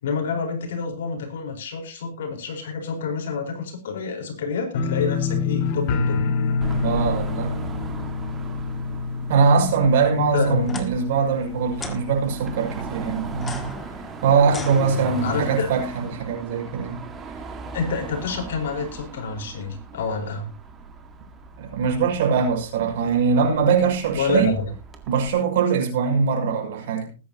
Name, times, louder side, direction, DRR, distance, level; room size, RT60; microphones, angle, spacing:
voice 1, 0.0-6.2 10.1-10.8 15.2-15.7 17.7-20.5 24.2-24.6, left 5 dB, 75° left, 4.5 m, -28 dB
sound 1, 4.7-11.6 11.9-12.5 12.8-12.9, left 5 dB, 40° left, 2.0 m, -27 dB
Car passing by / Traffic noise roadway noise / Engine, 6.6-25.3, right 4 dB, 15° right, 1.9 m, -38 dB
voice 2, 6.8-7.5 9.3-13.7 14.2-17.0 21.6-24.6 25.1-27.1, right 5 dB, 60° right, 6.2 m, -22 dB
sound 2, 10.6-10.9 11.8-12.0 13.3-15.4, left 4 dB, 15° left, 1.7 m, -37 dB
20.5 x 9.7 x 2.9 m
hypercardioid pair, 150°, 0 cm